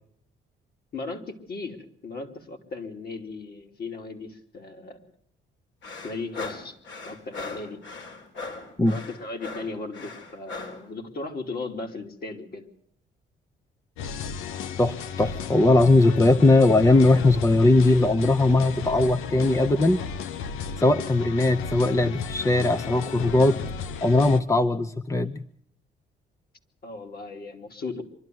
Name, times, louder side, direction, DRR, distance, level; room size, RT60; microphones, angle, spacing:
voice 1, 0.9-5.1 6.0-6.7 7.0-7.8 8.8-12.7 26.8-28.0, left 3 dB, 50° left, 3 dB, 3.0 m, -36 dB
sound 1, 5.8-10.8, left 3 dB, 70° left, 4.0 m, -38 dB
sound 2, 14.0-24.4, left 7 dB, 90° left, 1.0 m, -34 dB
voice 2, 14.8-20.0 20.8-23.6 24.0-25.4, left 2 dB, 15° left, 9 dB, 0.8 m, -19 dB
24.5 x 12.0 x 9.4 m, 0.65 s
cardioid pair, 90°, 20 cm